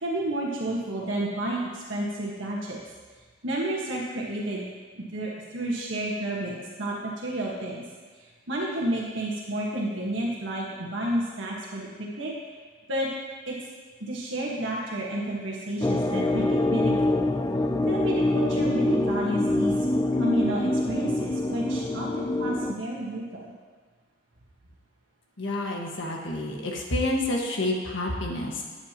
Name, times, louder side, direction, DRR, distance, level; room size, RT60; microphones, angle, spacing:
voice 1, 0.0-2.8 3.4-4.6 4.9-7.8 8.2-12.3 12.9-13.1 13.5-13.6 14.0-17.2 17.9-19.9 20.1-23.5, right 1 dB, 90° right, -3 dB, 1.5 m, -30 dB
sound 1, 15.8-22.7, left 1 dB, 20° left, 0.4 m, -25 dB
voice 2, 25.4-28.6, left 1 dB, 80° left, 0 dB, 1.6 m, -29 dB
13.5 x 8.6 x 2.9 m, 1.5 s
head